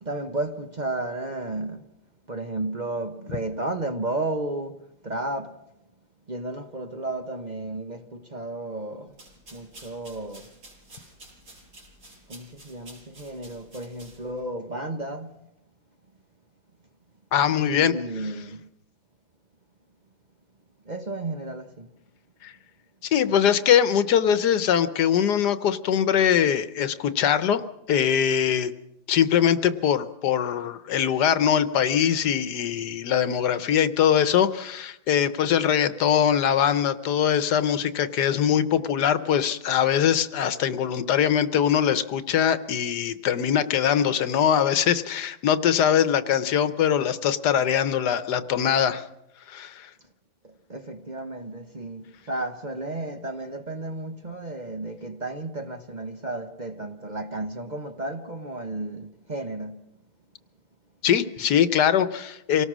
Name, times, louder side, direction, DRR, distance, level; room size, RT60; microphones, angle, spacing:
voice 1, 0.0-1.8 2.3-5.6 6.3-9.2 9.5-10.5 12.3-15.4 17.6-18.6 20.8-21.9 50.4-59.8, right 2 dB, 30° right, 1.0 m, -33 dB
sound 1, 9.1-14.4, right 1 dB, 70° right, 6.1 m, -50 dB
voice 2, 17.3-17.9 22.4-22.5 23.1-27.6 27.9-28.7 29.1-49.0 49.5-49.9 61.0-62.7, left 9 dB, 80° left, 1.5 m, -22 dB
26.0 x 18.0 x 6.2 m
omnidirectional pair, 1.7 m